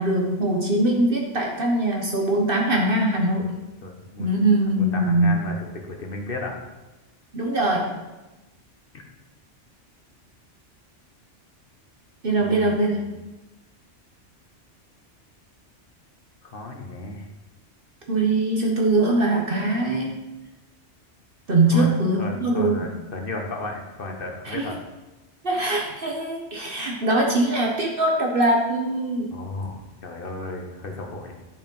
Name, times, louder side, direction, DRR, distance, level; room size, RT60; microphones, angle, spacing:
voice 1, 0.0-3.5 4.2-5.4 7.3-7.9 12.2-13.0 18.1-20.2 21.5-22.9 24.4-24.7 25.4-29.3, right 2 dB, 50° right, 0 dB, 1.3 m, -22 dB
voice 2, 3.8-4.3 4.7-6.6 12.3-13.1 16.4-17.3 21.7-21.9 22.2-24.8 29.3-31.3, left 2 dB, 50° left, 2 dB, 1.5 m, -34 dB
11.0 x 5.0 x 5.4 m, 1.1 s
omnidirectional pair, 1.3 m